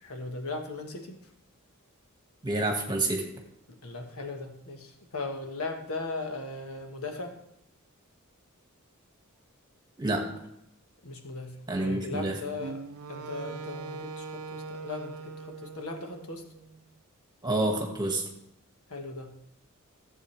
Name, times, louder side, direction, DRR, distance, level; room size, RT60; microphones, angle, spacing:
voice 1, 0.0-1.2 3.8-7.3 11.0-11.5 11.8-12.8 13.1-16.4 18.9-19.5, left 3 dB, 75° left, 4 dB, 1.3 m, -38 dB
voice 2, 2.4-3.3 10.0-10.4 11.7-12.3 17.4-18.3, right 2 dB, 20° right, 2 dB, 1.7 m, -28 dB
Wind instrument woodwind instrument, 12.6-16.8, right 4 dB, 85° right, 0.5 m, -41 dB
14.0 x 7.8 x 3.2 m, 0.77 s
head